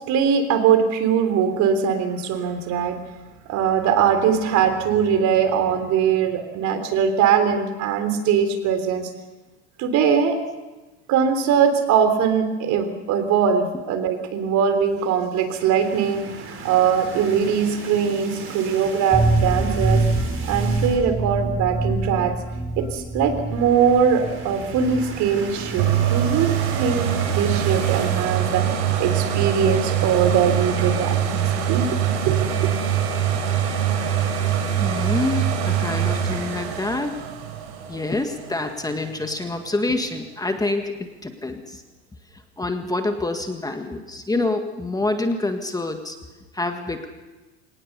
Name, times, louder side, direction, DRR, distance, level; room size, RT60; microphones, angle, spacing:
voice 1, 0.1-3.0 3.5-9.1 9.8-10.4 11.1-20.0 20.5-22.3 22.8-28.6 29.0-31.4 31.7-31.9 32.3-32.4, right 7 dB, 55° right, 8 dB, 3.6 m, -21 dB
sound 1, 15.4-21.2 21.6-21.8 22.0-22.1 23.2-28.2, right 4 dB, 35° right, 5.2 m, -38 dB
sound 2, 19.1-28.7 29.0-29.1 29.4-29.5, right 2 dB, 10° right, 3.6 m, -26 dB
sound 3, 25.8-39.5 40.0-40.1, right 9 dB, 75° right, 4.4 m, -23 dB
voice 2, 34.8-37.2 37.9-41.8 42.6-46.2 46.5-47.1, left 2 dB, 10° left, 5 dB, 1.7 m, -26 dB
23.5 x 19.0 x 6.8 m, 1.2 s
supercardioid pair, 115°, 34 cm